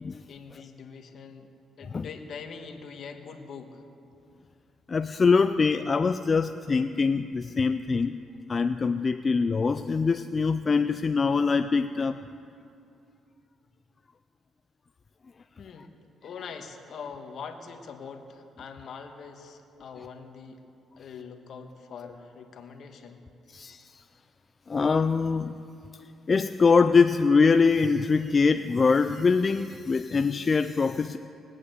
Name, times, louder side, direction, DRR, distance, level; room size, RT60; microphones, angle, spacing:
voice 1, 0.3-1.5 1.8-3.8 15.6-15.9 16.2-20.6 21.0-23.2, left 5 dB, 65° left, 5 dB, 1.5 m, -43 dB
voice 2, 4.9-8.2 8.5-12.2 23.5-24.0 24.7-25.6 26.3-31.2, left 4 dB, 35° left, 10 dB, 0.4 m, -23 dB
20.0 x 8.5 x 8.1 m, 2.6 s
cardioid pair, 90°, 0 cm